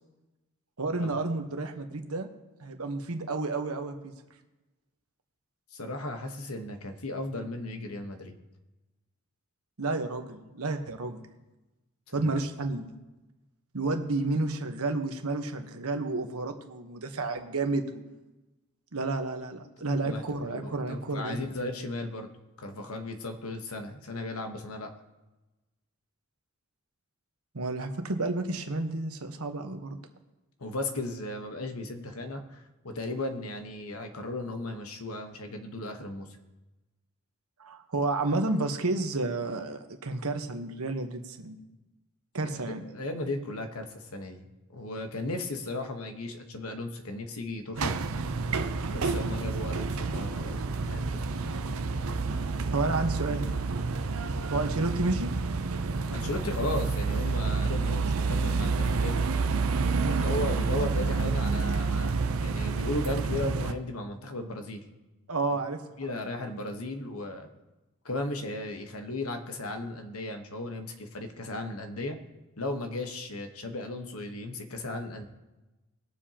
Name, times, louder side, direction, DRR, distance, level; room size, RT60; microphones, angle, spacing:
voice 1, 0.8-2.3 2.6-3.9 9.8-11.2 12.1-12.8 13.7-18.0 18.9-21.5 27.5-30.0 37.6-41.6 42.3-42.8 52.7-53.5 54.5-55.3 60.0-60.3 65.3-66.2, right 2 dB, 85° right, 5 dB, 1.1 m, -31 dB
voice 2, 5.7-8.4 12.1-12.4 20.0-22.3 22.6-24.9 30.6-36.3 42.4-44.5 44.7-47.9 48.9-51.2 56.1-59.3 60.0-64.8 66.0-67.5 68.0-72.2 72.6-75.2, left 2 dB, 80° left, 5 dB, 1.2 m, -36 dB
sound 1, 47.8-63.7, right 4 dB, 70° right, 0.6 m, -29 dB
20.5 x 7.4 x 2.9 m, 1.1 s
head